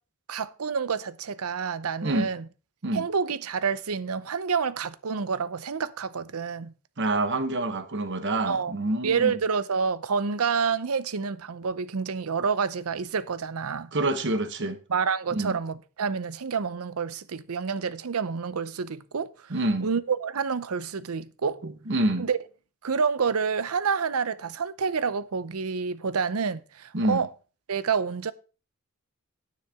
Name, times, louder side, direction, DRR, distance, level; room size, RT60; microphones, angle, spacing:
voice 1, 0.3-2.5 2.9-6.7 8.5-8.7 9.0-13.9 14.9-19.5 19.8-21.6 22.2-22.4 22.8-27.3 27.7-28.3, right 5 dB, 85° right, 0.6 m, -28 dB
voice 2, 7.0-9.4 13.9-14.8 15.3-15.6 19.5-19.9 21.6-22.3 26.9-27.3, right 2 dB, 55° right, 1.2 m, -27 dB
9.8 x 9.6 x 3.6 m
head